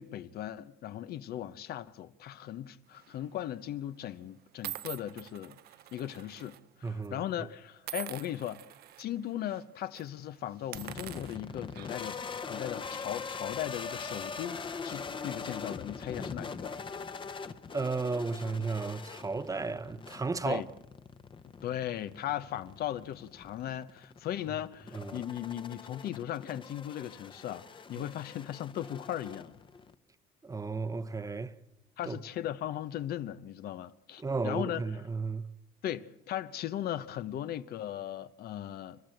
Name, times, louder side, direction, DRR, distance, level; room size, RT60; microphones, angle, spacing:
voice 1, 0.0-5.6 5.9-8.6 9.0-12.2 12.5-14.6 14.8-16.8 20.4-20.7 21.6-27.6 27.9-29.5 32.0-34.8 35.8-39.0, left 11 dB, 65° left, 0.9 m, -37 dB
sound 1, 3.0-3.3 4.0-4.1 4.6-6.6 6.9-7.1 7.8-9.0 9.5-9.6 9.9-10.1 10.6-12.2, right 13 dB, 65° right, 0.8 m, -44 dB
voice 2, 6.8-7.5 17.7-20.6 24.9-25.2 28.0-28.1 30.4-31.5 32.1-32.2 34.2-35.4, right 4 dB, 20° right, 0.9 m, -34 dB
sound 2, 10.7-29.9, left 5 dB, 30° left, 1.0 m, -43 dB
29.5 x 12.0 x 7.8 m
cardioid pair, 110°, 17 cm